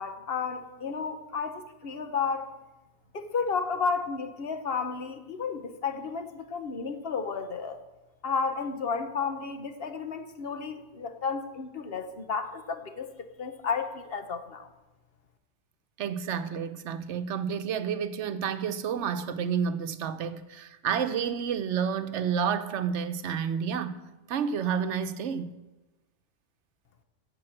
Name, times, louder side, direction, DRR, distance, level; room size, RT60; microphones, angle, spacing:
voice 1, 0.0-2.5 3.1-7.8 8.2-14.7, left 5 dB, 60° left, 1.1 m, -32 dB
voice 2, 16.0-24.0 24.3-25.6, right 7 dB, 80° right, 1.0 m, -30 dB
15.5 x 5.2 x 7.7 m
omnidirectional pair, 1.2 m